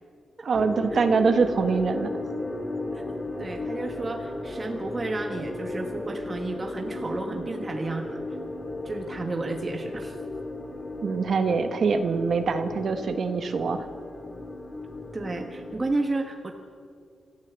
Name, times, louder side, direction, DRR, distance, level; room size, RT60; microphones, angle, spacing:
voice 1, 0.4-2.1 11.0-13.9, right 5 dB, 55° right, 8 dB, 1.3 m, -24 dB
sound 1, 0.5-15.9, left 2 dB, 10° left, 2.3 m, -35 dB
voice 2, 3.4-8.2 8.8-10.2 15.1-16.5, right 2 dB, 25° right, 4 dB, 1.5 m, -32 dB
26.5 x 15.0 x 8.3 m, 2.3 s
cardioid pair, 115°, 0 cm